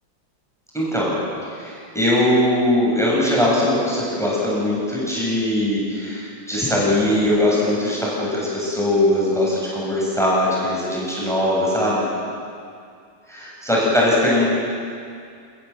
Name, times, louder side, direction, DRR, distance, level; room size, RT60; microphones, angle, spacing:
voice 1, 0.7-1.1 1.5-12.0 13.3-14.5, left 1 dB, ahead, -6 dB, 7.9 m, -20 dB
29.0 x 21.0 x 7.6 m, 2.4 s
omnidirectional pair, 2.1 m